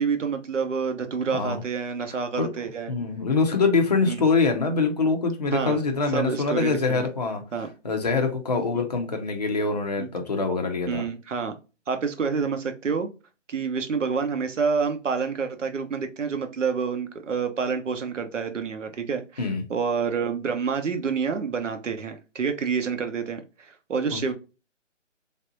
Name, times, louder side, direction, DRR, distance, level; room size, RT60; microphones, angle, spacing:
voice 1, 0.0-2.9 4.1-4.3 5.5-5.8 6.1-7.0 7.5-7.7 8.8-8.9 10.0-10.1 10.9-11.5 11.9-13.1 13.5-24.3, right 5 dB, 70° right, 0.9 m, -28 dB
voice 2, 2.1-2.5 2.9-11.0 19.4-19.6 24.1-24.3, left 4 dB, 35° left, 0.5 m, -24 dB
3.4 x 2.7 x 2.6 m
hypercardioid pair, 165°, 38 cm